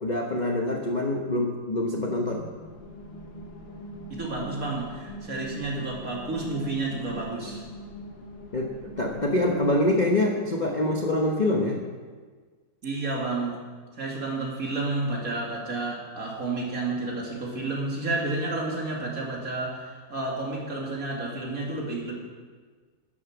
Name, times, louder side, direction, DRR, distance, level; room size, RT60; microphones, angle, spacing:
voice 1, 0.0-2.4 8.5-11.9, left 1 dB, 35° left, 1 dB, 0.8 m, -25 dB
sound 1, 2.3-10.1, equal, 75° left, 2.5 m, -42 dB
voice 2, 4.1-7.6 12.8-13.6 14.0-22.1, right 2 dB, 45° right, -2 dB, 2.8 m, -31 dB
12.0 x 10.5 x 6.1 m, 1.5 s
omnidirectional pair, 2.1 m